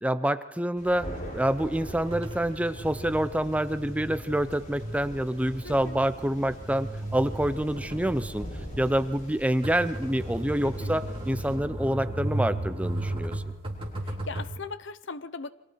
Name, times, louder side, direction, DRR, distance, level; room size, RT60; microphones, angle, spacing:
voice 1, 0.0-1.1 1.3-8.5 8.8-13.5, right 1 dB, 5° right, 12 dB, 0.7 m, -27 dB
Thunder, 0.8-11.5, equal, 40° left, 8.0 m, -43 dB
sound 1, 2.1-14.5, right 1 dB, 25° right, 3.8 m, -35 dB
voice 2, 5.6-6.0 10.6-11.0 14.0-15.5, left 4 dB, 65° left, 14 dB, 0.9 m, -39 dB
29.0 x 24.5 x 4.7 m, 0.98 s
head